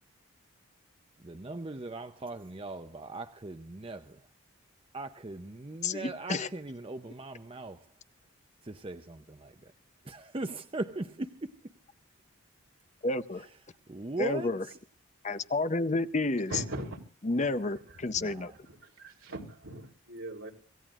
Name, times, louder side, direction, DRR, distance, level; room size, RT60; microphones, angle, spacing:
voice 1, 1.2-4.3 4.9-7.9 8.6-9.7 10.0-11.6 13.9-14.8 18.1-18.6, right 2 dB, 25° right, 0.6 m, -39 dB
voice 2, 5.8-6.5 13.0-13.5 14.2-14.6 15.2-16.5 17.2-18.5, left 2 dB, 35° left, 0.7 m, -30 dB
voice 3, 16.5-17.0 17.4-17.6 18.1-18.2 18.7-20.5, right 1 dB, 75° right, 3.3 m, -40 dB
26.0 x 16.5 x 2.5 m
head